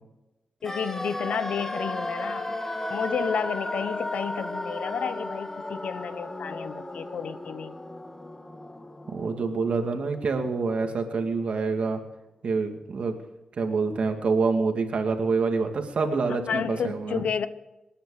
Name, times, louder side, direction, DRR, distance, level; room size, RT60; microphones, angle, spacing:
voice 1, 0.6-2.6 2.9-7.7 16.5-17.5, left 7 dB, 85° left, 13 dB, 1.0 m, -31 dB
sound 1, 0.6-10.6 10.8-10.9, left 1 dB, 20° left, 1.6 m, -35 dB
voice 2, 9.1-12.0 12.4-13.1 13.6-17.2, right 4 dB, 65° right, 4 dB, 2.4 m, -26 dB
28.0 x 10.0 x 5.0 m, 0.98 s
wide cardioid pair, 95°, 2 cm